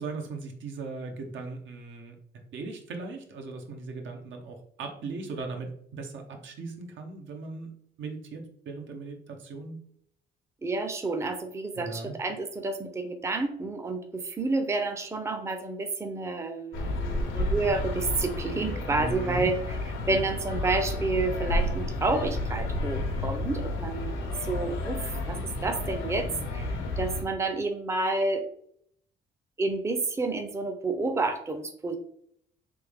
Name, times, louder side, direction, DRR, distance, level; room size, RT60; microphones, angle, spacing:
voice 1, 0.0-7.7 8.0-9.8 11.8-12.1 18.9-19.5, right 3 dB, 75° right, 4 dB, 0.8 m, -38 dB
voice 2, 10.6-19.6 20.1-25.4 25.6-28.4 29.6-32.0, right 3 dB, 15° right, 6 dB, 0.5 m, -30 dB
sound 1, 16.7-27.2, left 1 dB, 80° left, 0.9 m, -31 dB
3.4 x 3.0 x 3.4 m, 0.66 s
cardioid pair, 90°, 20 cm